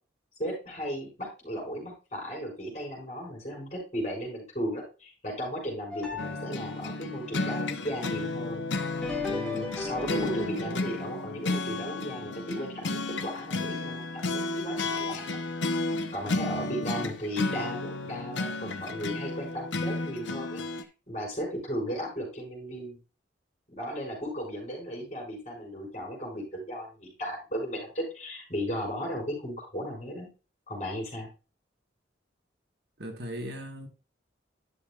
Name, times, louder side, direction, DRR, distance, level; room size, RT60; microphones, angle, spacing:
voice 1, 0.4-8.6 9.3-15.4 16.1-20.6 21.1-23.0 23.7-30.3 30.7-31.3, equal, 40° left, 5.3 m, -35 dB
sound 1, 5.9-7.0 8.9-13.3 13.7-13.8 14.7-14.8 15.6-15.7, left 3 dB, 5° left, 1.8 m, -38 dB
sound 2, 6.2-20.8, left 2 dB, 80° left, 0.8 m, -33 dB
voice 2, 16.4-16.7 33.0-33.9, equal, 60° right, 1.5 m, -38 dB
11.0 x 6.7 x 2.3 m
head